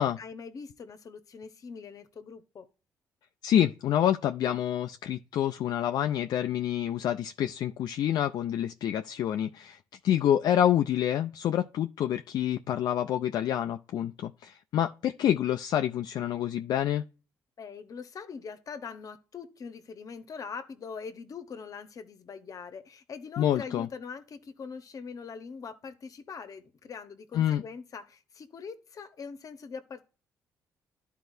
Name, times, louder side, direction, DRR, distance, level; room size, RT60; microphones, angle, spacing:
voice 1, 0.2-2.7 17.6-30.0, left 5 dB, 50° left, 1.0 m, -42 dB
voice 2, 3.4-9.8 10.0-17.0 23.4-23.9 27.3-27.6, left 10 dB, 70° left, 0.4 m, -27 dB
12.0 x 4.5 x 2.6 m
supercardioid pair, 65°, 7 cm